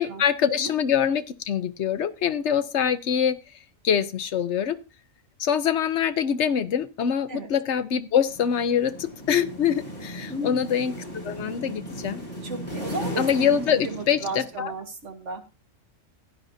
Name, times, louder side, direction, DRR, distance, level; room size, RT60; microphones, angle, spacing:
voice 1, 0.0-3.4 3.8-4.8 5.4-11.0 11.2-12.2 13.2-14.7, left 8 dB, 60° left, 1.0 m, -24 dB
sound 1, 8.3-14.8, equal, 30° left, 5.0 m, -37 dB
voice 2, 10.3-10.7 12.4-15.6, right 2 dB, 60° right, 1.8 m, -35 dB
16.0 x 10.5 x 2.7 m
omnidirectional pair, 1.4 m